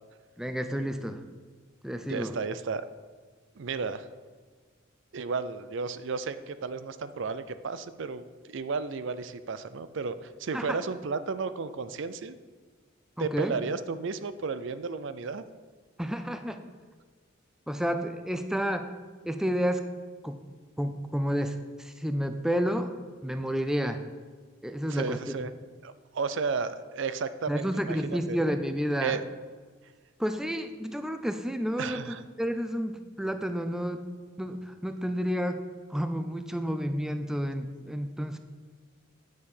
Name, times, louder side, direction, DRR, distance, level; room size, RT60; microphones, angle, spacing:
voice 1, 0.4-1.2 1.8-2.4 10.5-10.8 13.2-13.6 16.0-16.6 17.7-18.9 19.2-19.8 20.2-20.4 20.8-22.9 23.2-24.0 24.6-25.2 27.5-29.2 30.2-34.1 34.4-35.6 35.9-38.4, equal, 5° right, 8 dB, 0.4 m, -30 dB
voice 2, 2.1-2.8 3.6-4.1 5.1-12.4 13.2-15.4 24.9-25.5 25.8-28.4 29.0-29.2 31.8-32.2, right 4 dB, 60° right, 13 dB, 0.5 m, -33 dB
9.6 x 6.7 x 5.4 m, 1.5 s
head